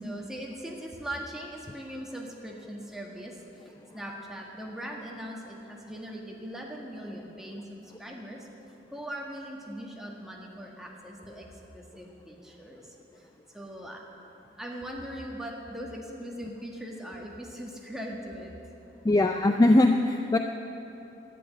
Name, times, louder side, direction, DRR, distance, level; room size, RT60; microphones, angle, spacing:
voice 1, 0.0-3.3 3.6-8.5 8.9-11.5 11.7-12.8 13.5-14.0 14.6-18.5, equal, 5° right, -2 dB, 1.5 m, -40 dB
voice 2, 19.0-20.4, left 2 dB, 20° left, 5 dB, 0.4 m, -21 dB
11.5 x 8.4 x 10.0 m, 3.0 s
head